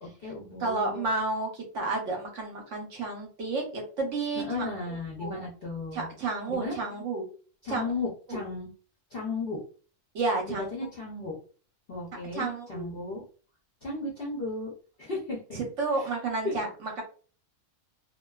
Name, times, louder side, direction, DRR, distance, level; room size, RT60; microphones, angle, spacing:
voice 1, 0.0-1.1 4.4-6.1 6.5-6.8 7.6-8.7 9.1-9.6 10.5-11.4 11.9-13.2 13.8-14.7 15.0-15.4 16.4-16.5, left 3 dB, 55° left, -4 dB, 0.6 m, -35 dB
voice 2, 0.6-4.7 5.2-5.4 5.9-7.2 7.7-7.8 8.3-8.4 10.1-10.7 12.3-12.9 15.5-17.0, right 3 dB, 65° right, 1 dB, 0.9 m, -31 dB
2.5 x 2.2 x 2.2 m, 0.40 s
omnidirectional pair, 1.6 m